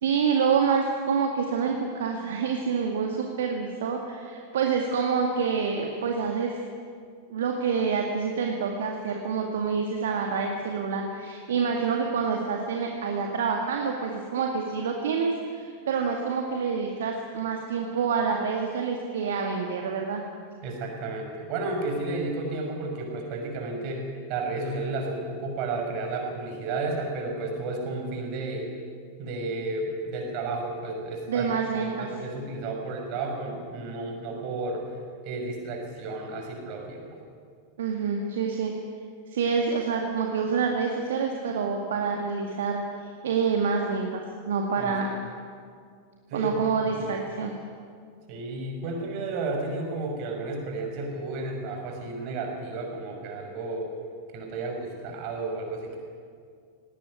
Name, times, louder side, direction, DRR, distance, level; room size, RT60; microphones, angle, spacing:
voice 1, 0.0-6.6 7.3-20.2 31.3-32.1 37.8-38.7 39.3-42.8 43.2-45.1 46.3-47.5, right 5 dB, 60° right, 2 dB, 2.0 m, -27 dB
voice 2, 20.6-28.7 29.2-31.5 31.8-34.8 35.2-37.2 44.8-44.9 46.3-46.5 46.8-47.1 48.3-53.9 54.3-56.0, right 3 dB, 40° right, 2 dB, 6.0 m, -32 dB
19.0 x 18.5 x 9.8 m, 2.2 s
figure-of-eight pair, 90°, 0 cm